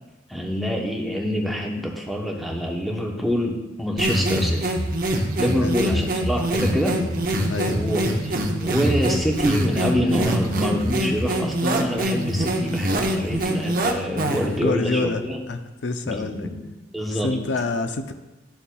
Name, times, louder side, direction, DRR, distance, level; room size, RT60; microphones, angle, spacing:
voice 1, 0.3-4.7 5.4-7.0 7.7-15.4 16.0-16.6 16.9-17.3, equal, ahead, 0 dB, 0.8 m, -26 dB
sound 1, 4.0-14.6, right 1 dB, 45° right, 0.8 m, -24 dB
voice 2, 7.5-7.8 14.3-16.5 17.1-18.1, left 3 dB, 70° left, 9 dB, 0.5 m, -27 dB
12.5 x 6.8 x 2.3 m, 1.1 s
head